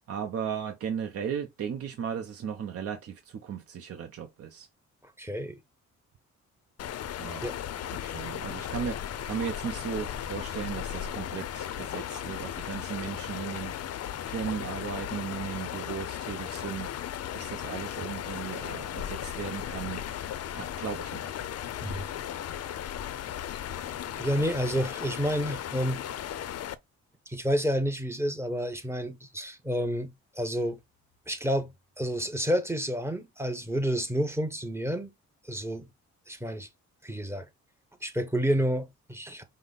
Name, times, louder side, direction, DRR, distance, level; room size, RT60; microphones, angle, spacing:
voice 1, 0.1-4.7 7.2-7.4 7.9-13.7 14.2-16.9 17.3-20.0 20.5-21.3, right 8 dB, 50° right, 0.7 m, -36 dB
voice 2, 5.0-5.6 7.4-7.6 21.8-22.1 24.2-26.0 27.3-30.8 31.3-31.7 32.0-35.1 35.4-35.9 36.3-36.7 37.0-37.5 38.0-39.4, equal, 10° right, 0.9 m, -29 dB
sound 1, 6.8-26.8, left 10 dB, 55° left, 0.5 m, -36 dB
5.3 x 2.1 x 4.0 m
cardioid pair, 90°, 30 cm